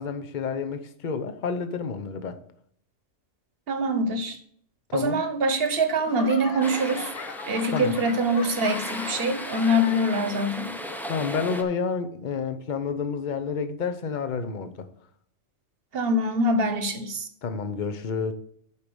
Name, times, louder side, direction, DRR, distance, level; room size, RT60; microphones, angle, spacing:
voice 1, 0.0-2.4 4.9-5.2 7.7-7.9 11.1-14.9 17.4-18.3, left 5 dB, 40° left, 0.9 m, -29 dB
voice 2, 3.7-4.4 4.9-7.1 7.5-10.7 15.9-17.3, right 1 dB, 50° right, 1.3 m, -24 dB
Laughter / Clapping / Crowd, 5.7-10.5 10.8-11.3 11.9-12.0, left 6 dB, 70° left, 1.2 m, -39 dB
sound 1, 6.6-11.6, equal, ahead, 0.6 m, -37 dB
8.3 x 5.2 x 6.2 m
omnidirectional pair, 1.3 m